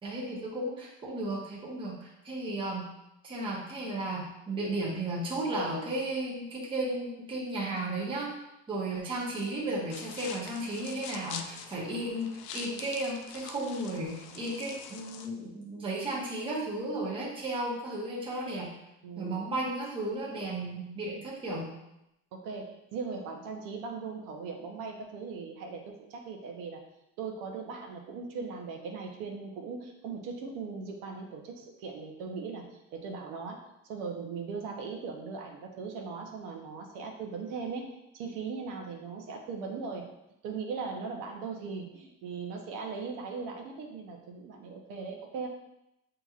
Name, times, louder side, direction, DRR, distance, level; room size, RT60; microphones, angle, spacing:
voice 1, 0.0-2.9 3.2-8.3 8.7-18.7 19.2-21.7, right 1 dB, 15° right, -5 dB, 0.8 m, -34 dB
sound 1, 9.9-15.3, left 7 dB, 70° left, 0.5 m, -44 dB
voice 2, 19.0-19.3 22.3-26.8 27.2-40.1 40.4-45.5, right 5 dB, 65° right, 1 dB, 0.8 m, -39 dB
7.5 x 2.9 x 2.4 m, 0.86 s
cardioid pair, 175°, 36 cm